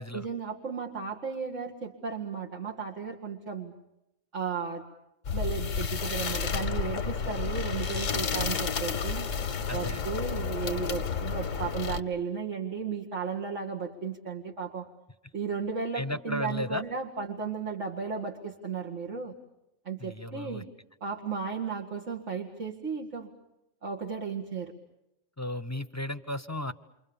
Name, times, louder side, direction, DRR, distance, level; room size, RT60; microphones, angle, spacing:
voice 1, 0.1-3.7 4.3-4.8 5.3-9.3 9.7-14.9 15.3-19.3 19.8-20.7 21.0-23.3 23.8-24.7, right 5 dB, 70° right, -1 dB, 2.4 m, -34 dB
sound 1, 5.2-12.0, left 6 dB, 80° left, 1.5 m, -31 dB
voice 2, 9.7-10.0 15.9-16.8 20.0-20.6 25.4-26.7, left 1 dB, 15° left, 10 dB, 0.9 m, -34 dB
28.5 x 25.5 x 7.1 m, 0.89 s
omnidirectional pair, 1.3 m